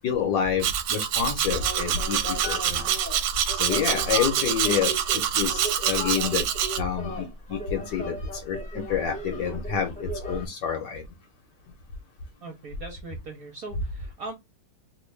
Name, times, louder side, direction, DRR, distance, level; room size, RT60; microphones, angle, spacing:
voice 1, 0.0-2.9 3.6-6.4 6.8-11.0, left 7 dB, 65° left, 1.2 m, -28 dB
Domestic sounds home sounds, 0.6-6.8, right 10 dB, 75° right, 1.3 m, -26 dB
Telephone, 1.1-6.4, left 3 dB, 85° left, 1.5 m, -38 dB
sound 1, 1.5-10.5, right 1 dB, 5° left, 0.9 m, -37 dB
voice 2, 12.4-14.3, right 3 dB, 55° right, 1.0 m, -40 dB
3.1 x 2.6 x 3.2 m
omnidirectional pair, 2.3 m